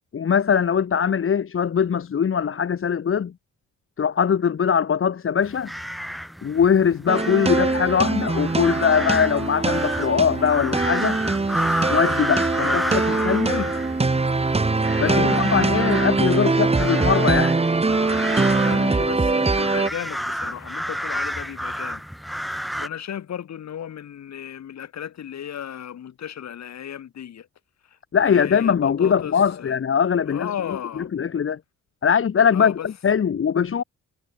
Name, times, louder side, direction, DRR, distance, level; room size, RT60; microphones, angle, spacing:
voice 1, 0.1-3.3 4.0-5.7 6.4-11.2 11.9-13.7 15.0-17.6 28.1-30.5 31.0-31.6 32.0-33.8, left 7 dB, 45° left, 2.1 m, -21 dB
sound 1, 5.4-22.9, equal, ahead, 3.6 m, -31 dB
sound 2, 7.1-19.9, right 3 dB, 20° right, 2.4 m, -22 dB
voice 2, 12.6-13.7 15.0-16.5 18.6-22.0 22.5-27.5 28.2-29.8 30.3-31.1 32.5-32.9, left 9 dB, 60° left, 8.0 m, -35 dB
cardioid pair, 90°, 30 cm